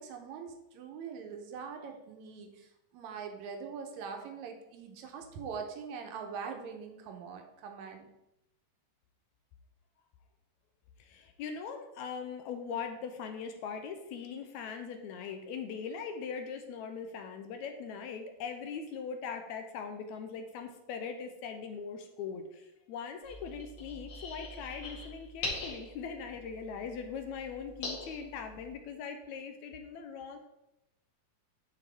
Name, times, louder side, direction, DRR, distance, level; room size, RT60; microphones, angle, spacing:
voice 1, 0.0-8.1, right 6 dB, 70° right, 4 dB, 1.9 m, -43 dB
voice 2, 11.0-30.4, left 6 dB, 80° left, 5 dB, 1.7 m, -41 dB
sound 1, 23.2-28.7, left 2 dB, 55° left, 3.3 m, -43 dB
11.0 x 4.6 x 3.5 m, 0.90 s
omnidirectional pair, 4.0 m